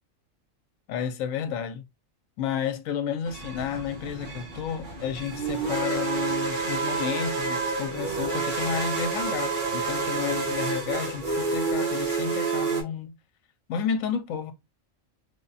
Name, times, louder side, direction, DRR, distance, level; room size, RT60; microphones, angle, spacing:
voice 1, 0.9-1.8 2.4-13.1 13.7-14.5, left 8 dB, 85° left, 1.0 m, -31 dB
sound 1, 3.3-12.8, right 4 dB, 40° right, 1.3 m, -29 dB
3.4 x 2.2 x 3.9 m
omnidirectional pair, 1.4 m